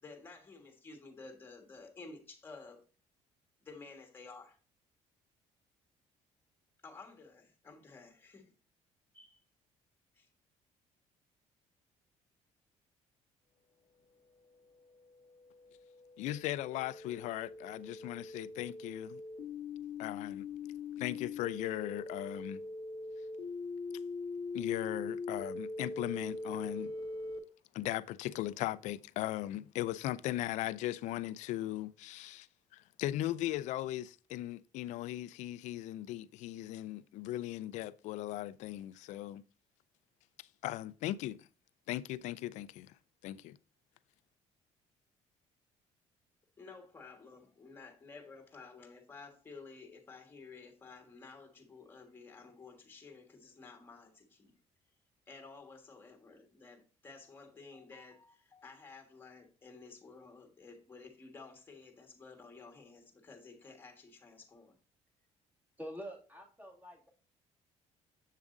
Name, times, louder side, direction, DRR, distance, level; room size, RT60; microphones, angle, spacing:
voice 1, 0.0-2.8 3.6-4.6 6.8-8.4 9.1-9.4 10.2-10.3 46.6-54.5 55.3-64.7, left 4 dB, 20° left, 1.4 m, -53 dB
sound 1, 14.1-27.4, left 3 dB, 40° left, 0.8 m, -43 dB
voice 2, 16.2-19.2 20.0-20.5 21.0-22.6 24.5-26.9 27.7-32.5 32.7-39.4 40.4-41.5 41.9-42.9 43.2-43.6, left 14 dB, 75° left, 0.4 m, -38 dB
voice 3, 65.8-67.1, equal, 15° right, 2.3 m, -46 dB
7.5 x 7.1 x 2.6 m
cardioid pair, 160°, 12 cm